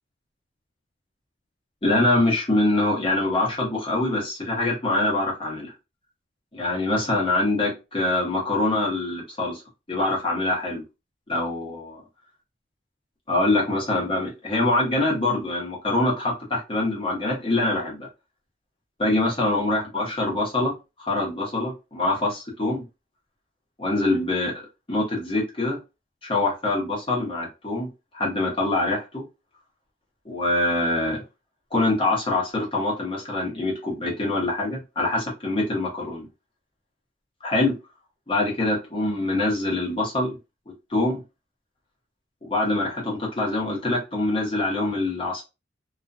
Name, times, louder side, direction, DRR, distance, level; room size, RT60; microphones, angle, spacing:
voice 1, 1.8-5.7 6.5-9.6 9.9-10.8 11.3-12.0 13.3-18.1 19.0-20.7 21.0-22.8 23.8-24.5 24.9-25.8 26.2-27.9 28.1-29.2 30.2-31.2 31.7-36.3 37.4-37.7 38.3-40.4 40.9-41.2 42.4-45.4, left 2 dB, 30° left, -3 dB, 0.9 m, -24 dB
2.4 x 2.2 x 2.5 m, 0.27 s
head